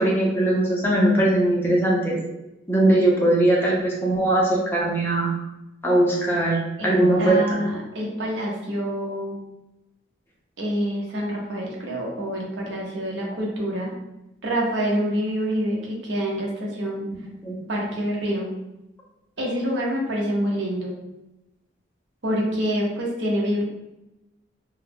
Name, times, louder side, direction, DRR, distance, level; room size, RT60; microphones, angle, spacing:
voice 1, 0.0-2.2 2.7-5.3 5.8-6.6 6.8-7.6 17.4-17.5, right 1 dB, 10° left, -4 dB, 0.5 m, -20 dB
voice 2, 6.8-9.4 10.6-13.9 14.4-17.1 17.7-18.5 19.4-20.9 22.2-23.6, equal, 70° right, -2 dB, 0.7 m, -26 dB
2.3 x 2.0 x 3.3 m, 0.94 s
head